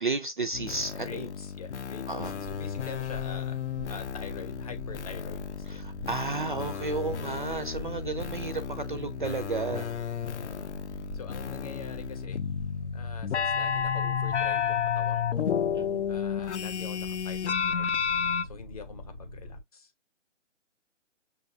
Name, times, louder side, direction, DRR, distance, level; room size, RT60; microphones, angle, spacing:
voice 1, 0.0-1.3 2.1-2.3 5.7-9.9 15.7-16.0, right 3 dB, 45° right, 0.4 m, -32 dB
sound 1, 0.5-18.5, left 7 dB, 65° left, 0.6 m, -32 dB
voice 2, 1.0-3.6 3.9-5.9 10.2-10.7 11.1-12.4 12.9-15.5 16.1-17.9 18.4-19.9, left 6 dB, 30° left, 0.8 m, -45 dB
Boat Water vehicle, 2.2-19.6, left 1 dB, ahead, 0.6 m, -44 dB
6.6 x 2.3 x 2.7 m
hypercardioid pair, 170°, 37 cm